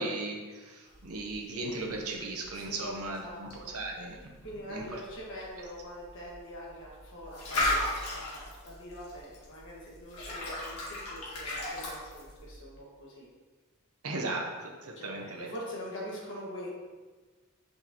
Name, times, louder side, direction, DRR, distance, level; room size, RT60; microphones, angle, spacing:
voice 1, 0.0-4.2 4.7-5.0 14.0-15.5, right 2 dB, 75° right, 1 dB, 0.9 m, -36 dB
sound 1, 0.9-12.6, left 1 dB, 85° left, 1.7 m, -37 dB
voice 2, 2.5-3.7 4.4-13.3 14.9-16.7, equal, 55° left, -5 dB, 1.7 m, -44 dB
6.2 x 5.2 x 3.0 m, 1.3 s
head